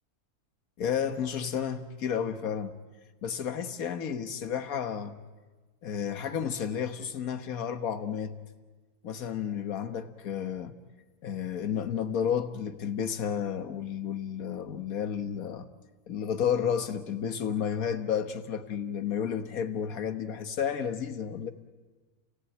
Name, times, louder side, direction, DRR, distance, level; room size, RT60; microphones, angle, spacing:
voice 1, 0.8-2.8 3.2-5.2 5.8-8.4 9.0-10.7 11.2-15.7 16.1-21.5, left 8 dB, 65° left, 1.7 m, -31 dB
29.5 x 18.0 x 9.2 m
omnidirectional pair, 1.6 m